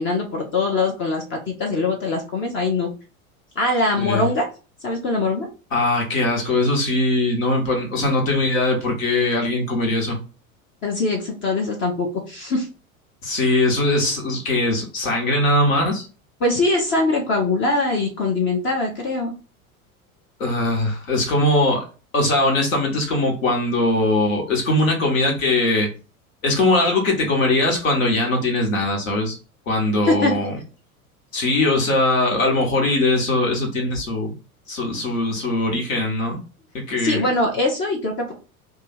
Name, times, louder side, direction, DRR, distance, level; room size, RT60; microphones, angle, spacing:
voice 1, 0.0-2.9 3.6-4.4 4.8-5.5 10.8-12.7 16.4-19.3 30.1-30.3 37.0-38.3, left 2 dB, 25° left, 1 dB, 0.7 m, -22 dB
voice 2, 4.0-4.3 5.7-10.2 13.2-16.1 20.4-21.8 22.1-25.9 26.4-29.4 29.7-30.6 31.3-34.3 34.7-36.4 36.7-37.2, left 2 dB, 65° left, 1 dB, 1.4 m, -21 dB
2.7 x 2.4 x 4.2 m, 0.35 s
figure-of-eight pair, 80°, 44 cm